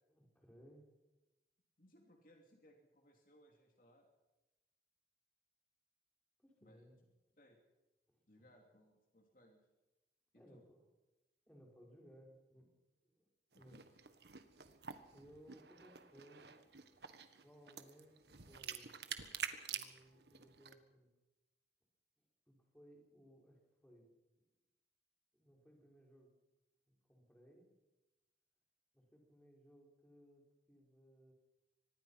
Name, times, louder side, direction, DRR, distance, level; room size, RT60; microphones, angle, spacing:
voice 1, 0.1-0.9 6.4-7.0 8.1-8.5 10.4-10.9 11.5-12.7 13.0-13.9 15.1-16.5 17.4-19.0 19.7-21.1 22.2-24.1 24.4-24.5 25.3-26.3 26.9-27.7 28.9-31.3, equal, 10° left, -1 dB, 5.3 m, -63 dB
voice 2, 1.8-4.1 6.6-6.9 7.4-7.6 8.3-9.6 10.3-10.6 13.5-13.8, equal, 50° left, 2 dB, 3.1 m, -66 dB
sound 1, 13.5-20.7, right 8 dB, 75° right, 1.5 m, -48 dB
25.0 x 20.0 x 5.8 m, 1.0 s
head